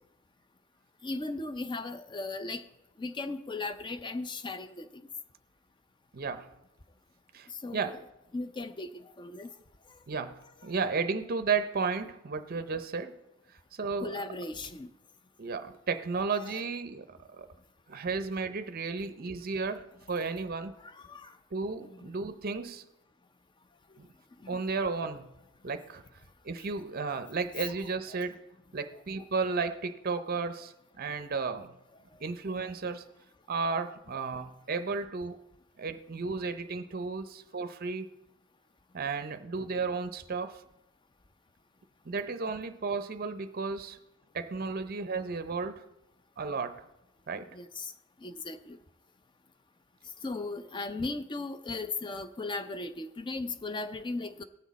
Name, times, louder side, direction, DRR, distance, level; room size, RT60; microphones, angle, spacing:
voice 1, 1.0-2.7 3.0-5.0 7.5-8.0 8.3-9.5 14.0-14.9 20.8-21.3 21.8-22.1 24.4-24.6 28.1-28.2 28.9-29.0 47.5-47.9 48.2-48.8 50.2-54.4, left 3 dB, 20° left, 11 dB, 0.4 m, -37 dB
voice 2, 6.1-6.5 7.3-8.0 10.1-13.2 13.7-14.2 15.4-17.5 17.9-20.8 21.5-22.9 24.0-24.1 24.5-25.3 25.6-26.0 26.4-28.4 28.7-31.7 32.2-33.1 33.5-35.4 35.8-38.1 38.9-40.6 42.0-44.0 44.3-45.8 46.4-46.9 47.3-47.6, right 4 dB, 45° right, 10 dB, 0.6 m, -33 dB
18.0 x 6.3 x 4.0 m, 0.93 s
head